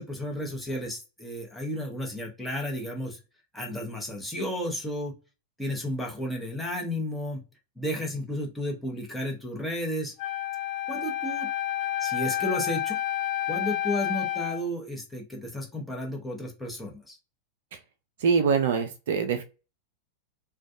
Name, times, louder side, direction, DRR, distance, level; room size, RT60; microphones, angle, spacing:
voice 1, 0.0-3.2 3.5-5.1 5.6-7.4 7.8-10.1 10.9-11.5 12.0-13.0 13.5-17.2, left 1 dB, 5° left, -1 dB, 0.9 m, -33 dB
Wind instrument woodwind instrument, 10.2-14.6, left 13 dB, 40° left, 0.6 m, -30 dB
voice 2, 18.2-19.4, right 6 dB, 55° right, 8 dB, 0.4 m, -24 dB
2.4 x 2.2 x 2.5 m, 0.30 s
figure-of-eight pair, 90°, 0 cm